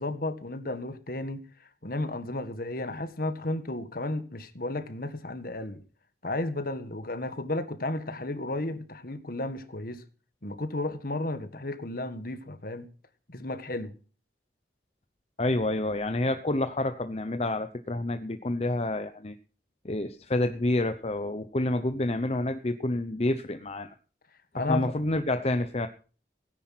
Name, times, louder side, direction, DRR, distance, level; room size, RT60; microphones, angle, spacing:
voice 1, 0.0-1.4 1.8-5.8 6.2-10.0 10.4-12.9 13.3-13.9 24.5-24.9, left 2 dB, 55° left, 1.8 m, -33 dB
voice 2, 15.4-19.3 19.8-23.9 24.6-25.9, left 1 dB, 35° left, 0.8 m, -28 dB
17.5 x 10.5 x 6.0 m
head